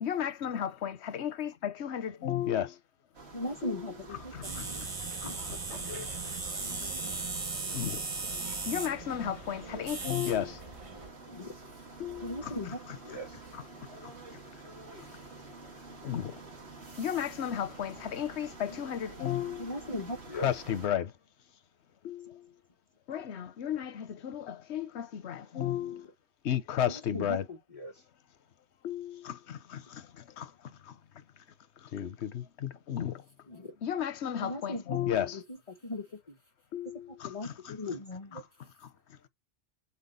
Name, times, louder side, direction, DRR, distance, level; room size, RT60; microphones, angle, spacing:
voice 1, 0.0-2.7 3.6-3.9 7.7-7.9 8.7-10.5 12.0-12.3 16.1-16.2 17.0-19.6 20.4-21.0 22.0-22.2 23.1-23.9 24.2-24.4 24.7-26.0 26.5-27.4 28.8-29.2 31.9-32.1 32.9-33.1 33.8-35.3 36.7-37.0, left 10 dB, 90° left, 1.1 m, -32 dB
sound 1, 3.1-20.9, right 3 dB, 75° right, 2.3 m, -49 dB
voice 2, 3.3-4.3 5.2-6.1 11.3-11.5 12.2-13.4 18.7-18.8 19.6-20.5 25.9-26.0 26.9-28.0 33.5-33.7 34.4-36.4 36.8-38.4, left 1 dB, 35° left, 1.1 m, -39 dB
voice 3, 4.0-4.4 25.2-25.6 35.7-35.9 38.6-39.3, equal, 15° right, 2.1 m, -65 dB
sound 2, 4.4-11.1, right 3 dB, 35° right, 1.0 m, -37 dB
8.2 x 4.3 x 3.9 m
omnidirectional pair, 1.1 m